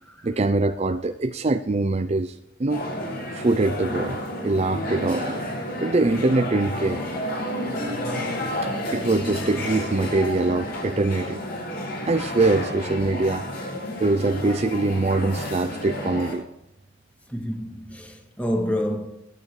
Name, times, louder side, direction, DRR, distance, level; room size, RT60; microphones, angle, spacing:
voice 1, 0.2-2.8 3.3-4.2 4.4-5.5 5.8-7.0 8.6-11.4 12.1-13.5 14.0-16.5, right 2 dB, 35° right, 0.5 m, -23 dB
sound 1, 2.7-16.4, left 1 dB, 55° left, 6.2 m, -31 dB
voice 2, 17.3-19.1, equal, 5° left, 2.2 m, -28 dB
21.0 x 9.9 x 3.2 m
head